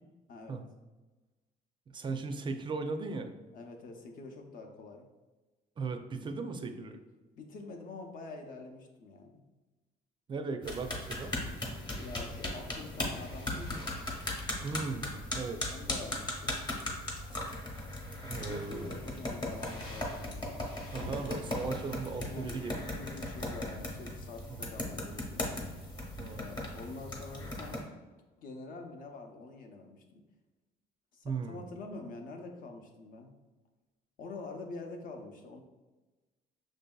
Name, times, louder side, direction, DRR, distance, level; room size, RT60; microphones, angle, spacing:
voice 1, 0.3-0.6 3.5-5.1 7.4-9.4 11.9-14.0 15.7-16.6 18.4-20.6 22.1-25.5 26.3-27.8 28.4-30.2 31.1-33.3 34.2-35.6, left 3 dB, 55° left, 3 dB, 0.7 m, -46 dB
voice 2, 1.9-3.3 5.8-7.0 10.3-11.3 14.6-15.6 18.2-19.0 20.9-22.8 24.5-24.7 26.2-26.4 31.2-31.6, right 4 dB, 30° right, 6 dB, 0.4 m, -37 dB
sound 1, 10.6-27.8, left 1 dB, 25° left, 1.0 m, -38 dB
6.2 x 2.6 x 2.2 m, 1.2 s
cardioid pair, 110°, 17 cm